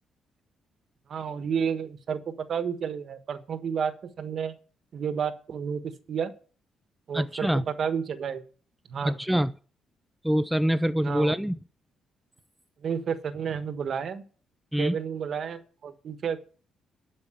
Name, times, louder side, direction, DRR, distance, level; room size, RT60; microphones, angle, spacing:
voice 1, 1.1-4.6 4.9-6.3 7.1-8.4 8.9-9.2 11.0-11.3 12.8-14.2 14.8-16.4, right 7 dB, 55° right, 1.3 m, -31 dB
voice 2, 7.1-7.6 9.0-9.5 10.2-11.6 14.7-15.0, equal, 5° right, 0.5 m, -25 dB
11.5 x 5.3 x 8.2 m
cardioid pair, 90°, 0 cm